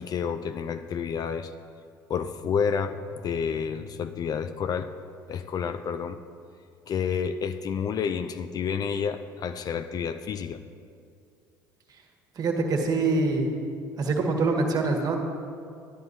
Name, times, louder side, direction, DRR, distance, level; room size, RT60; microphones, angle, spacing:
voice 1, 0.0-1.5 2.1-4.9 5.3-6.2 6.9-10.6, left 6 dB, 35° left, 10 dB, 0.4 m, -29 dB
voice 2, 12.4-13.5 14.0-15.2, right 3 dB, 35° right, 2 dB, 1.5 m, -24 dB
14.0 x 10.5 x 2.7 m, 2.3 s
figure-of-eight pair, 60°, 11 cm